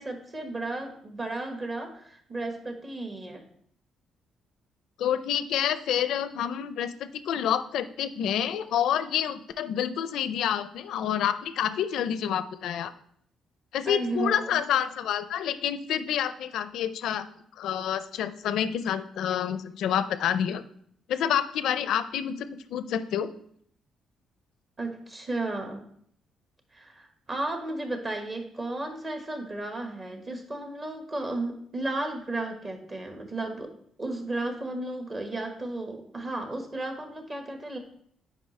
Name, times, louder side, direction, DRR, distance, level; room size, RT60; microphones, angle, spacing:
voice 1, 0.0-3.4 13.9-14.7 24.8-25.8 26.7-33.7 34.0-37.8, right 2 dB, 35° right, 4 dB, 1.4 m, -34 dB
voice 2, 5.0-12.9 13.7-17.3 17.6-20.6 21.1-23.3, left 9 dB, 80° left, 13 dB, 0.4 m, -28 dB
9.0 x 5.0 x 3.2 m, 0.65 s
cardioid pair, 90°, 0 cm